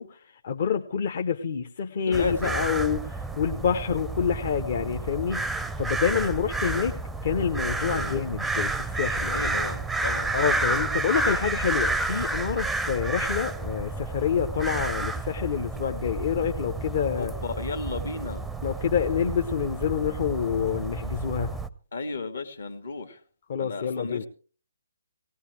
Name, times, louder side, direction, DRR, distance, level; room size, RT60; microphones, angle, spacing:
voice 1, 0.0-7.0 7.2-9.6 10.3-17.3 18.6-21.5 23.5-24.2, left 7 dB, 45° left, 0.8 m, -27 dB
voice 2, 2.0-2.6 7.9-8.2 9.3-10.3 17.2-18.5 21.9-23.2 23.6-24.3, left 4 dB, 60° left, 1.7 m, -34 dB
sound 1, 2.1-21.7, right 3 dB, 5° right, 0.6 m, -30 dB
19.0 x 17.0 x 3.3 m
figure-of-eight pair, 140°, 0 cm